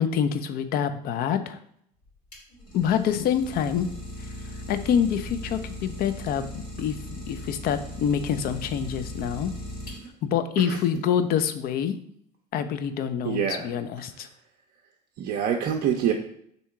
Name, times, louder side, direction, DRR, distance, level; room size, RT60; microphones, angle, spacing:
voice 1, 0.0-1.6 2.7-3.9 4.7-7.0 7.3-9.5 10.2-12.0 12.5-14.3, left 8 dB, 50° left, 10 dB, 0.5 m, -26 dB
Idling, 2.0-10.4, left 1 dB, 80° left, 1.6 m, -38 dB
voice 2, 10.6-11.0 13.2-13.7 15.2-16.1, right 8 dB, 50° right, 2 dB, 0.5 m, -26 dB
3.6 x 2.8 x 4.4 m, 0.68 s
hypercardioid pair, 65°, 20 cm